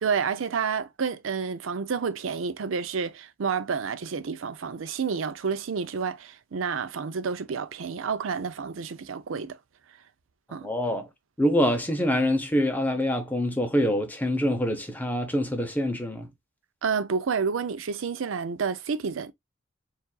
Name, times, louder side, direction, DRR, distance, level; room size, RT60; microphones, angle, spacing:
voice 1, 0.0-9.6 10.5-10.7 16.8-19.3, right 5 dB, 85° right, 0.5 m, -29 dB
voice 2, 10.5-11.1 11.4-16.3, equal, 10° left, 0.7 m, -25 dB
7.0 x 2.5 x 2.3 m
head